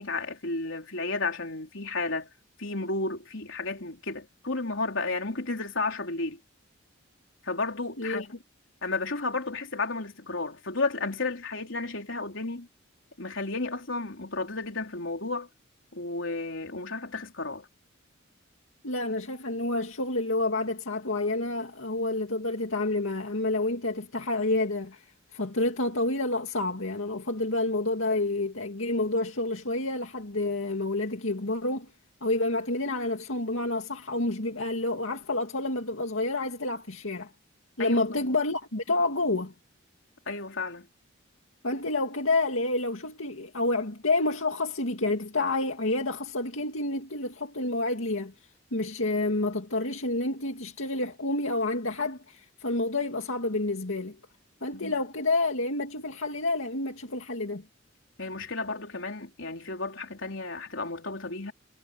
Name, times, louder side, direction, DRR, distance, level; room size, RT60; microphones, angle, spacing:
voice 1, 0.0-2.3 2.6-6.4 7.4-8.4 8.8-12.7 13.2-15.5 15.9-17.7 37.8-38.0 40.3-40.9 54.7-54.9 58.2-61.5, left 3 dB, 70° left, 3.9 m, -32 dB
voice 2, 18.8-25.0 25.3-31.9 32.2-37.3 37.8-39.5 41.6-48.3 48.7-54.2 54.6-57.6, left 2 dB, 90° left, 2.3 m, -29 dB
head